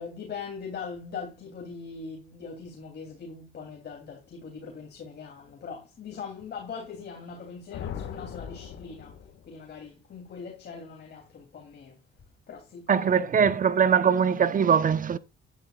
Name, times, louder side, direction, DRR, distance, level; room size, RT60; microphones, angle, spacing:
voice 1, 0.0-9.2 9.5-12.0 12.5-13.5, left 5 dB, 55° left, 3.0 m, -41 dB
sound 1, 7.7-9.7, left 8 dB, 75° left, 1.8 m, -39 dB
voice 2, 12.9-15.2, right 7 dB, 45° right, 0.9 m, -22 dB
11.5 x 11.0 x 2.4 m
cardioid pair, 90°, 20 cm